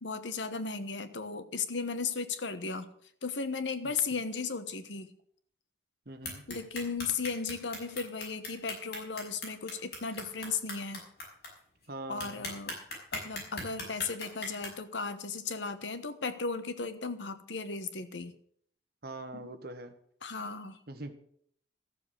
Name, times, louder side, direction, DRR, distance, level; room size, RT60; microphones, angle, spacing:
voice 1, 0.0-2.9 3.2-5.1 6.5-11.1 12.1-12.8 13.1-18.3 19.3-19.5 20.2-20.8, left 4 dB, 90° left, 12 dB, 1.2 m, -36 dB
voice 2, 6.0-6.4 11.9-12.5 19.0-19.9 20.9-21.1, right 2 dB, 60° right, 8 dB, 1.5 m, -42 dB
sound 1, 6.2-11.5 11.8-11.9 12.2-14.7, left 2 dB, 60° left, 5.5 m, -38 dB
13.5 x 7.1 x 8.1 m, 0.65 s
head